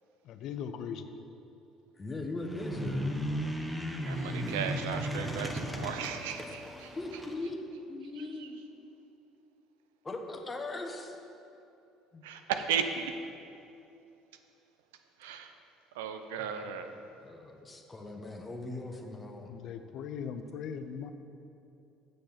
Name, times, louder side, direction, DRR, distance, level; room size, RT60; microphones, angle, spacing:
voice 1, 0.2-1.1 19.4-21.1, left 7 dB, 60° left, 9 dB, 0.6 m, -39 dB
voice 2, 2.0-3.2 6.9-7.6 7.9-8.6 10.0-11.2 12.1-12.2 16.4-16.5 17.2-19.5, left 2 dB, 20° left, 3 dB, 1.1 m, -39 dB
sound 1, 2.4-7.4, equal, 5° right, 1.0 m, -35 dB
voice 3, 4.0-6.9 12.2-13.1 15.2-15.5 16.0-16.9, right 7 dB, 80° right, 7 dB, 0.5 m, -35 dB
7.9 x 6.5 x 5.6 m, 2.7 s
hypercardioid pair, 70°, 0 cm